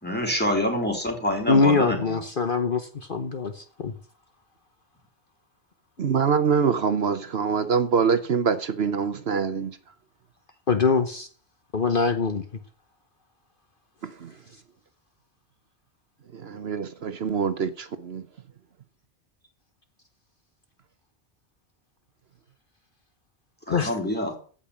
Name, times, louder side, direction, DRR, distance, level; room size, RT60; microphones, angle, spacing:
voice 1, 0.0-2.2 23.7-24.3, left 1 dB, 10° left, 3.9 m, -26 dB
voice 2, 1.5-3.9 10.7-11.3 11.7-12.4 23.7-24.0, left 4 dB, 50° left, 1.2 m, -23 dB
voice 3, 6.0-9.7 14.0-14.3 16.3-18.2, right 6 dB, 65° right, 1.1 m, -24 dB
15.0 x 5.5 x 8.5 m
omnidirectional pair, 1.2 m